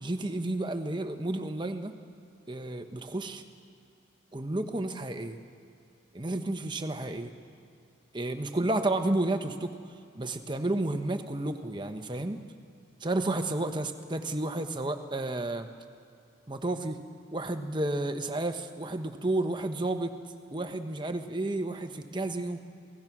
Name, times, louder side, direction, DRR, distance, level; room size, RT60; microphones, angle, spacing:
voice 1, 0.0-2.0 2.5-3.4 4.3-5.4 6.1-7.3 8.1-9.7 10.1-12.4 13.0-15.7 16.5-17.0 17.3-20.1 20.5-22.6, right 2 dB, 25° right, 7 dB, 1.0 m, -31 dB
28.0 x 18.5 x 6.0 m, 2.5 s
head